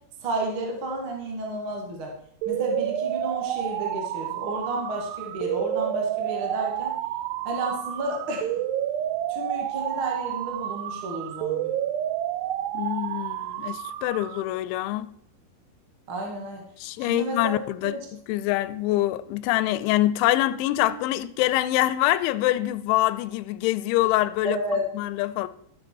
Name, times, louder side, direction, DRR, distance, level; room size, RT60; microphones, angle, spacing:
voice 1, 0.2-2.1 2.5-6.9 7.4-8.5 9.3-11.7 16.1-16.6 17.0-17.6 17.8-18.0 24.4-24.8, right 1 dB, 40° right, 1.9 m, -31 dB
sound 1, 2.4-14.4, right 11 dB, 85° right, 2.5 m, -30 dB
voice 2, 12.7-15.1 16.8-24.6 24.9-25.5, left 15 dB, 90° left, 3.0 m, -25 dB
13.0 x 7.9 x 4.5 m
omnidirectional pair, 5.3 m